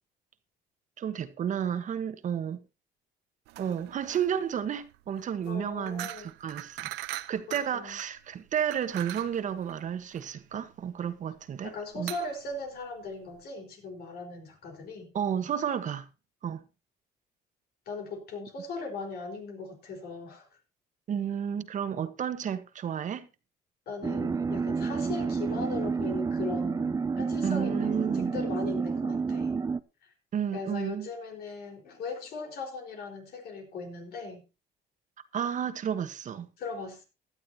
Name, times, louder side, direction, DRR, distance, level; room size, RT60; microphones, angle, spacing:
voice 1, 1.0-2.6 3.6-6.1 6.4-6.9 7.3-12.1 15.1-16.1 16.4-16.6 21.1-23.3 27.4-28.4 30.3-31.1 35.3-36.5, right 8 dB, 50° right, 1.2 m, -32 dB
sound 1, 3.5-13.4, right 17 dB, 90° right, 0.7 m, -43 dB
voice 2, 5.5-6.3 7.5-8.0 11.6-15.1 17.9-20.5 23.9-29.6 30.0-30.1 30.5-34.4 36.6-37.0, left 3 dB, 70° left, 4.4 m, -39 dB
sound 2, 24.0-29.8, right 5 dB, 20° right, 0.5 m, -30 dB
16.5 x 11.5 x 2.8 m
cardioid pair, 110°, 17 cm